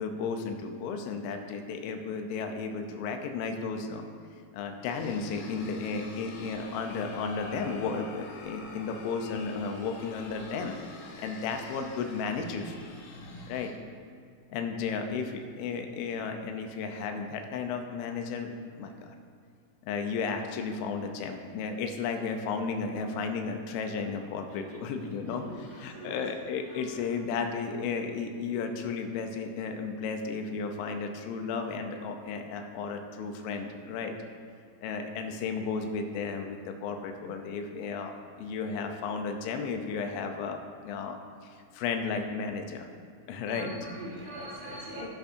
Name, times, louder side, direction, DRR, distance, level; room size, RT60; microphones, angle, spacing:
voice 1, 0.0-4.0 4.5-10.8 11.2-12.7 13.5-13.7 14.5-18.5 18.8-18.9 19.8-34.1 34.8-40.6 40.8-41.2 41.4-42.9 43.3-43.7 44.7-44.8, left 5 dB, 85° left, 5 dB, 3.2 m, -34 dB
sound 1, 4.8-13.7, left 3 dB, 70° left, 2.4 m, -46 dB
voice 2, 25.3-26.3 26.7-27.0 43.5-45.1, right 1 dB, 70° right, -5 dB, 4.0 m, -42 dB
15.5 x 10.0 x 2.7 m, 2.1 s
omnidirectional pair, 5.4 m